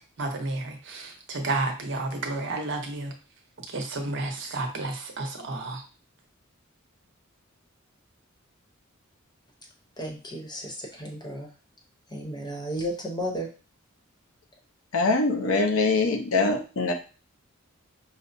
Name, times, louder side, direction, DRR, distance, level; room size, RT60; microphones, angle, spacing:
voice 1, 0.2-3.1 3.7-5.8, right 2 dB, 60° right, 3 dB, 0.8 m, -31 dB
voice 2, 10.0-11.5 12.1-13.5, equal, 20° left, 1 dB, 0.9 m, -33 dB
voice 3, 14.9-16.9, left 3 dB, 75° left, 4 dB, 0.7 m, -23 dB
5.7 x 2.0 x 2.6 m, 0.35 s
head